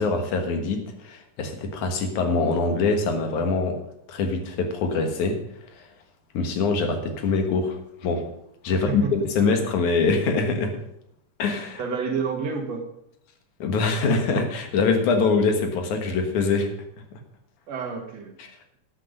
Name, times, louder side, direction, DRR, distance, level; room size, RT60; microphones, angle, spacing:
voice 1, 0.0-3.8 4.1-5.9 6.3-8.3 8.6-10.8 11.4-11.8 13.6-16.7 17.1-17.2 18.4-18.5, left 4 dB, 75° left, 5 dB, 3.0 m, -24 dB
voice 2, 8.8-9.1 11.8-12.9 17.7-18.4, right 5 dB, 60° right, 3 dB, 2.7 m, -29 dB
11.5 x 8.9 x 5.2 m, 0.77 s
omnidirectional pair, 3.4 m